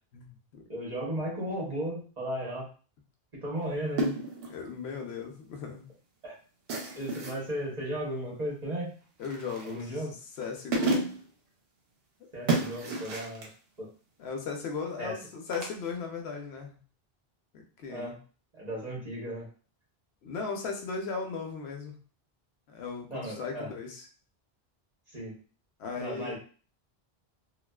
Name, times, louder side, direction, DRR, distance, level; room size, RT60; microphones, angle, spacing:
voice 1, 0.1-0.6 4.5-5.9 9.2-9.9 10.4-11.1 12.2-12.3 14.2-16.8 17.5-18.2 20.2-21.9 22.7-24.1 25.8-26.4, left 5 dB, 90° left, 3 dB, 0.9 m, -37 dB
voice 2, 0.7-2.7 3.4-4.1 6.2-6.3 6.9-8.9 9.6-10.1 12.3-13.5 13.8-13.9 15.0-15.2 17.9-18.1 18.5-19.5 23.1-23.7 25.1-25.4 26.0-26.4, right 1 dB, 45° right, -4 dB, 1.0 m, -35 dB
sound 1, 4.0-4.6 6.7-7.4 9.2-9.8 10.4-10.5 10.7-11.3 12.5-13.5 15.5-15.7, right 2 dB, 75° right, 0.8 m, -31 dB
2.4 x 2.4 x 2.2 m, 0.39 s
omnidirectional pair, 1.0 m